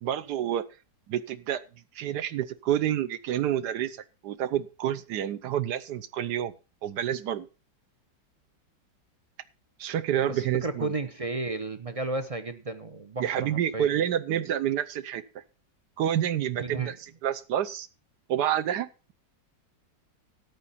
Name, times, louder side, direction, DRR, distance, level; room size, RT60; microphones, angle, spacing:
voice 1, 0.0-0.6 1.1-1.6 1.9-6.5 6.8-7.5 9.8-10.9 13.2-15.2 16.0-17.9 18.3-19.1, right 10 dB, 70° right, 15 dB, 1.4 m, -28 dB
voice 2, 10.2-13.9 16.6-16.9, right 3 dB, 50° right, 10 dB, 0.4 m, -33 dB
13.5 x 9.5 x 4.1 m, 0.31 s
omnidirectional pair, 1.9 m